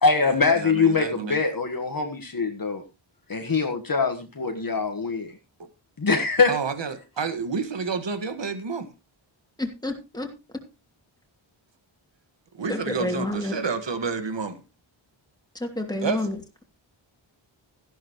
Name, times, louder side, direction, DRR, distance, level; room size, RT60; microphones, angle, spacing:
voice 1, 0.0-2.8 3.3-5.3 6.0-6.5, left 4 dB, 45° left, 5 dB, 1.5 m, -23 dB
voice 2, 0.5-1.4 5.6-5.7 6.5-8.9 12.5-14.6 15.9-16.2, right 5 dB, 60° right, 9 dB, 1.9 m, -29 dB
voice 3, 9.6-10.3 12.7-13.6 15.5-16.6, left 1 dB, 10° left, 2 dB, 2.7 m, -30 dB
14.5 x 11.5 x 3.1 m, 0.27 s
wide cardioid pair, 90°, 49 cm